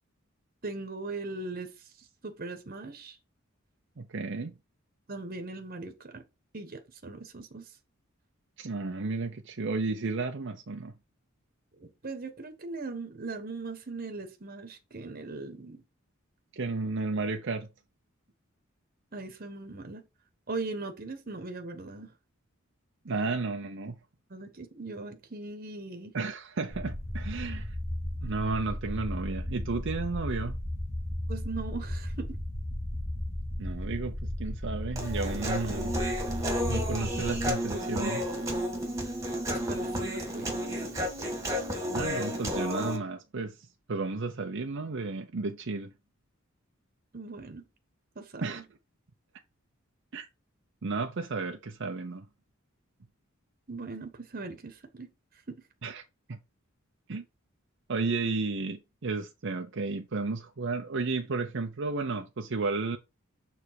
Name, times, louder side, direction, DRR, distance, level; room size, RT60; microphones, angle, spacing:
voice 1, 0.6-1.7 2.2-3.2 5.1-6.2 6.5-7.6 11.8-15.8 19.1-20.0 20.5-22.1 24.3-26.1 31.3-32.3 39.5-40.6 47.1-47.6 48.1-48.6 53.7-55.1 55.5-55.6, right 3 dB, 45° right, 1.2 m, -39 dB
voice 2, 4.0-4.5 8.6-10.9 16.6-17.7 23.0-24.0 26.1-27.7 28.2-30.6 33.6-35.9 36.7-38.3 41.9-43.6 43.9-45.9 48.4-48.6 50.1-50.3 50.8-52.3 55.8-56.0 56.3-56.4 57.1-57.2 57.9-63.0, right 3 dB, 60° right, 0.7 m, -33 dB
sound 1, 26.7-37.5, left 1 dB, 35° left, 2.8 m, -35 dB
Human voice, 35.0-43.0, equal, 15° right, 1.9 m, -32 dB
6.8 x 3.4 x 4.7 m
head